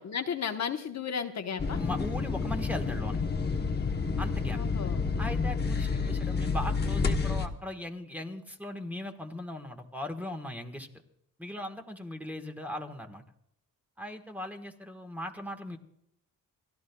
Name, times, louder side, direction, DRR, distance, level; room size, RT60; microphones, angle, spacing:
voice 1, 0.1-1.8 4.5-5.1, left 7 dB, 55° left, 5 dB, 1.1 m, -34 dB
sound 1, 1.6-7.5, left 4 dB, 30° left, 1.0 m, -29 dB
voice 2, 1.7-3.2 4.2-4.6 5.2-10.9 11.4-13.2 14.0-15.8, left 1 dB, 5° right, 4 dB, 1.4 m, -38 dB
29.5 x 13.0 x 2.3 m, 0.75 s
wide cardioid pair, 135°, 33 cm